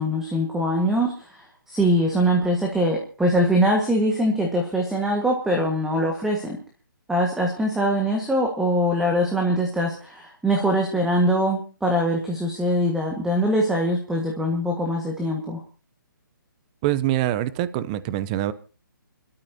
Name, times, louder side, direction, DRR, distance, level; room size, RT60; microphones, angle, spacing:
voice 1, 0.0-6.6 7.1-15.6, equal, 5° right, 0 dB, 1.6 m, -23 dB
voice 2, 16.8-18.5, right 14 dB, 20° right, 15 dB, 0.7 m, -24 dB
29.5 x 13.0 x 2.8 m, 0.34 s
hypercardioid pair, 160°, 11 cm